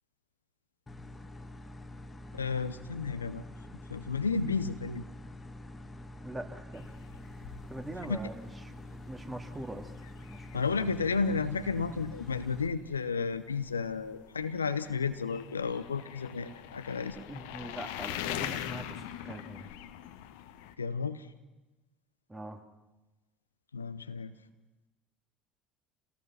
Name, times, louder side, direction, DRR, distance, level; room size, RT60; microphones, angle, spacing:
sound 1, 0.9-12.7, left 1 dB, 15° left, 2.0 m, -46 dB
voice 1, 2.3-3.4 3.9-5.1 8.0-8.2 10.5-17.2 20.8-21.3 23.7-24.3, left 5 dB, 80° left, 12 dB, 0.7 m, -32 dB
voice 2, 6.2-6.8 7.3-8.7 9.1-9.9 10.3-10.6 17.2-19.7 22.3-22.6, right 1 dB, 15° right, 5 dB, 2.6 m, -43 dB
sound 2, 6.7-20.7, left 12 dB, 65° left, 1.1 m, -44 dB
28.0 x 18.0 x 5.9 m, 1.1 s
figure-of-eight pair, 60°, 0 cm